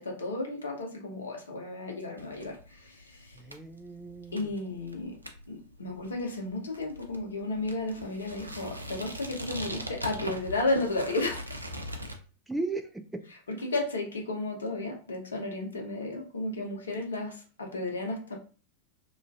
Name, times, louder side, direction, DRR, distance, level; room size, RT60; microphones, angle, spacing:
voice 1, 0.0-3.4 4.3-5.2 5.5-11.4 13.6-18.4, left 2 dB, 70° left, 1 dB, 0.7 m, -33 dB
sound 1, 2.2-12.2, equal, 80° right, 0.4 m, -41 dB
voice 2, 3.3-4.5 12.5-13.3, right 2 dB, 5° right, 5 dB, 0.3 m, -36 dB
2.4 x 2.3 x 2.3 m, 0.38 s
figure-of-eight pair, 90°, 0 cm